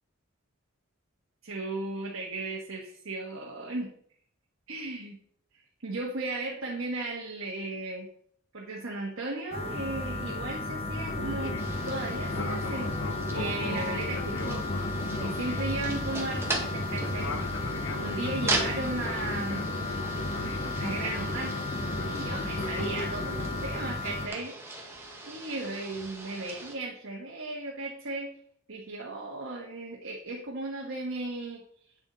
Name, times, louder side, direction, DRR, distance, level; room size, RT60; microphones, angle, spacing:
voice 1, 1.4-3.9 4.7-5.2 5.8-8.1 8.5-14.6 15.2-17.4 17.9-19.7 20.8-21.6 22.0-25.0 25.2-28.3 28.7-31.6, right 2 dB, 70° right, -2 dB, 1.3 m, -36 dB
sound 1, 9.5-24.3, left 2 dB, 30° left, 1.3 m, -34 dB
Fixed-wing aircraft airplane, 11.0-23.7, left 2 dB, 65° left, 0.7 m, -36 dB
sound 2, 11.6-26.8, right 2 dB, 10° right, 1.5 m, -39 dB
9.0 x 7.1 x 4.0 m, 0.63 s
head